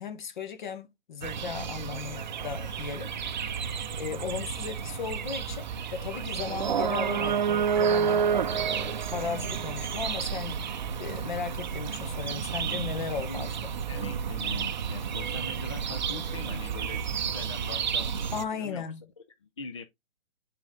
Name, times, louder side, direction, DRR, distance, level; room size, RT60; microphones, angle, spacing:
voice 1, 0.0-3.1 4.0-10.7 11.0-13.7 18.3-19.0, left 6 dB, 45° left, 1.3 m, -36 dB
sound 1, 1.2-18.4, right 7 dB, 45° right, 0.6 m, -31 dB
voice 2, 4.0-4.4 13.9-18.1 18.5-18.9 19.6-19.8, left 4 dB, 30° left, 0.4 m, -42 dB
7.3 x 3.9 x 3.8 m
hypercardioid pair, 155°, 33 cm